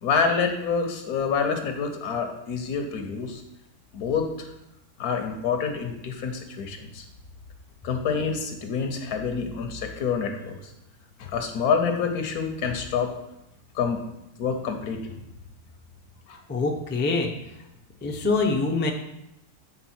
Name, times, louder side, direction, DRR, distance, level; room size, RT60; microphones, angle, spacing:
voice 1, 0.0-3.4 3.9-4.5 5.0-7.1 7.8-10.7 11.2-13.1 13.7-14.0 14.4-15.2 16.3-16.4, left 5 dB, 85° left, 5 dB, 1.4 m, -27 dB
voice 2, 16.5-17.3 18.0-18.9, left 3 dB, 15° left, 0 dB, 0.3 m, -24 dB
8.0 x 4.2 x 4.4 m, 0.85 s
omnidirectional pair, 1.6 m